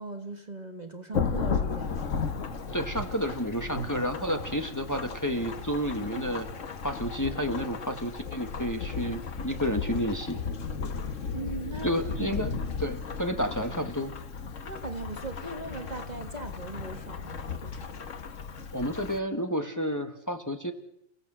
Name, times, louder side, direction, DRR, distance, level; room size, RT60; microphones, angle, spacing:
voice 1, 0.0-2.1 11.3-12.3 14.7-17.9, right 3 dB, 35° right, 1.7 m, -39 dB
Thunderstorm / Rain, 1.1-19.2, left 5 dB, 80° left, 1.7 m, -35 dB
voice 2, 2.7-6.5 6.8-10.4 11.8-12.5 12.8-14.1 18.7-20.7, equal, 15° left, 1.7 m, -30 dB
30.0 x 17.0 x 7.7 m
omnidirectional pair, 1.3 m